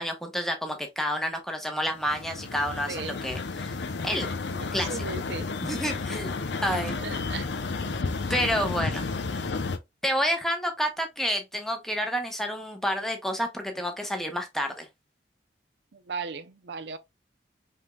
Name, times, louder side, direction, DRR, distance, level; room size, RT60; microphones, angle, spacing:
voice 1, 0.0-3.8 4.0-4.3 4.7-5.0 5.7-6.3 6.6-7.0 8.3-9.1 10.0-14.9, equal, ahead, 0.9 m, -29 dB
sound 1, 1.9-9.8, left 4 dB, 80° left, 0.7 m, -32 dB
voice 2, 4.5-5.5 7.0-7.5 8.8-8.9 15.9-17.0, right 4 dB, 70° right, 0.5 m, -37 dB
5.1 x 3.6 x 2.2 m
head